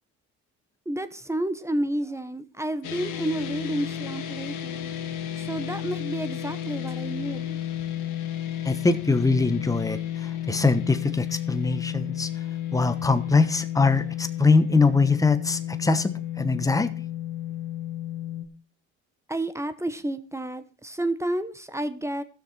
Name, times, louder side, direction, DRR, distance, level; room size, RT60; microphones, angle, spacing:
voice 1, 0.8-4.9 5.4-8.1 19.3-22.2, right 1 dB, 10° right, 1.1 m, -31 dB
sound 1, 2.8-18.5, left 11 dB, 80° left, 1.7 m, -32 dB
voice 2, 8.6-12.3 12.7-16.9, left 3 dB, 10° left, 1.1 m, -23 dB
15.0 x 6.6 x 4.3 m
supercardioid pair, 75°, 31 cm